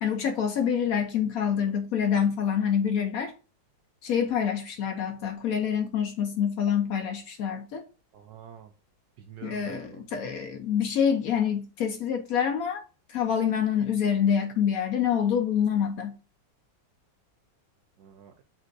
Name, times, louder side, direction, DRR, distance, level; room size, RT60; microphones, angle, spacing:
voice 1, 0.0-3.3 4.0-7.8 9.4-12.8 13.1-16.2, left 8 dB, 70° left, 0.8 m, -26 dB
voice 2, 8.1-8.7 9.2-10.1 18.0-18.4, right 9 dB, 70° right, 0.9 m, -47 dB
7.4 x 2.5 x 2.5 m
omnidirectional pair, 2.0 m